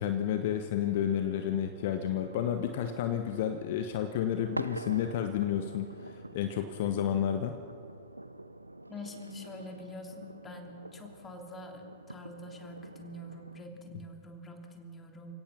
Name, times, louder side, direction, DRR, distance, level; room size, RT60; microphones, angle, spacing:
voice 1, 0.0-7.6, left 10 dB, 55° left, 7 dB, 1.0 m, -31 dB
sound 1, 0.8-13.6, right 2 dB, 85° right, 0.5 m, -46 dB
voice 2, 8.9-15.3, left 1 dB, 20° left, 3 dB, 3.1 m, -46 dB
29.0 x 17.0 x 6.0 m, 2.3 s
figure-of-eight pair, 90°, 0 cm